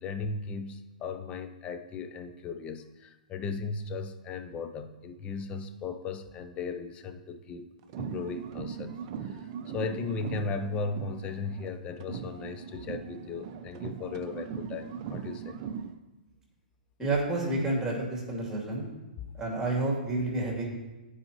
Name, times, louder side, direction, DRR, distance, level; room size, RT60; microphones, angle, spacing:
voice 1, 0.0-7.7 8.0-9.4 9.7-15.6 19.2-19.3, left 4 dB, 25° left, 9 dB, 0.5 m, -37 dB
sound 1, 7.8-11.7 12.0-16.0, right 7 dB, 40° right, 0.5 m, -39 dB
voice 2, 17.0-18.9 19.4-20.7, right 2 dB, 10° right, -2 dB, 2.2 m, -29 dB
12.0 x 4.8 x 3.0 m, 1.1 s
figure-of-eight pair, 115°, 5 cm